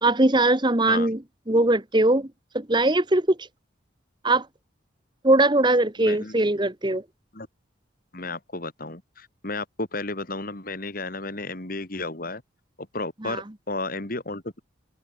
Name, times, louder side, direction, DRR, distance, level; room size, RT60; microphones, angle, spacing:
voice 1, 0.0-1.2 1.5-2.3 2.5-3.3 4.2-4.4 5.2-7.0 13.2-13.4, right 2 dB, 20° right, 1.2 m, -20 dB
voice 2, 6.0-6.5 7.3-7.5 8.1-12.4 12.9-14.6, left 2 dB, 45° left, 2.4 m, -33 dB
open air
head